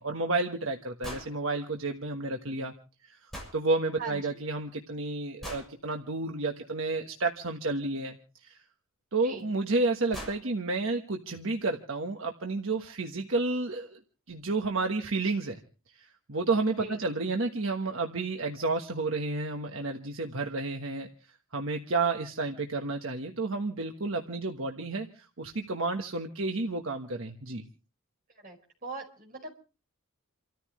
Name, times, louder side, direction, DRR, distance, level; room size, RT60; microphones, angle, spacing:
voice 1, 0.0-2.7 3.0-3.2 3.5-8.6 9.1-14.0 14.3-15.6 15.9-21.1 21.5-27.6, right 3 dB, 65° right, 3 dB, 1.3 m, -31 dB
sound 1, 1.0-1.3 3.3-3.6 5.4-5.7 8.0-8.1 9.4-9.5 9.8-9.9 10.1-10.4, equal, ahead, 6.9 m, -40 dB
voice 2, 4.0-4.4 9.2-9.5 16.8-17.0 28.3-29.5, right 4 dB, 40° right, 1 dB, 5.0 m, -41 dB
29.5 x 14.0 x 3.1 m, 0.36 s
head